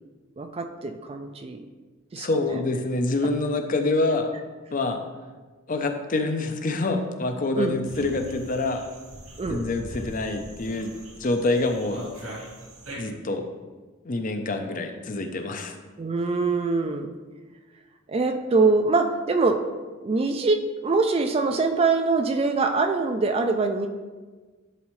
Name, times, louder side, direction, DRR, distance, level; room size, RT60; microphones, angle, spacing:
voice 1, 0.4-1.6 2.1-2.6 7.5-7.8 9.4-9.7 16.0-17.1 18.1-19.6 20.0-23.9, right 3 dB, 30° right, 6 dB, 0.3 m, -24 dB
voice 2, 2.2-4.3 4.7-5.0 5.7-8.8 9.5-10.9 11.2-12.0 13.0-13.5 14.0-15.7, left 2 dB, 40° left, 6 dB, 0.6 m, -26 dB
sound 1, 7.8-13.0, right 1 dB, 90° right, 2.3 m, -41 dB
11.0 x 4.1 x 3.1 m, 1.3 s
head